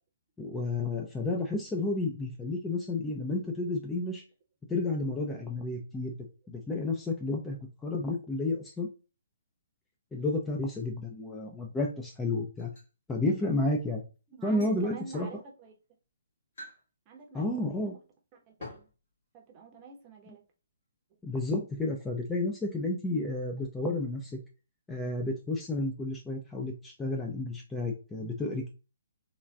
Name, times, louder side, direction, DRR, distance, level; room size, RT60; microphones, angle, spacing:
voice 1, 0.4-4.2 4.7-6.1 6.5-7.6 7.8-8.9 10.1-12.7 13.1-14.0 14.4-15.3 17.3-17.9 21.2-24.4 24.9-28.7, left 2 dB, 10° left, 0.4 m, -31 dB
sound 1, 12.6-12.9 14.4-14.8 15.6-15.7 16.5-16.9 17.2-17.3 18.6-19.0, left 1 dB, 55° left, 1.7 m, -46 dB
voice 2, 14.3-15.7 17.1-18.0 18.5-18.9 19.3-20.4, right 5 dB, 25° right, 0.7 m, -48 dB
3.7 x 2.3 x 2.2 m
figure-of-eight pair, 130°, 0 cm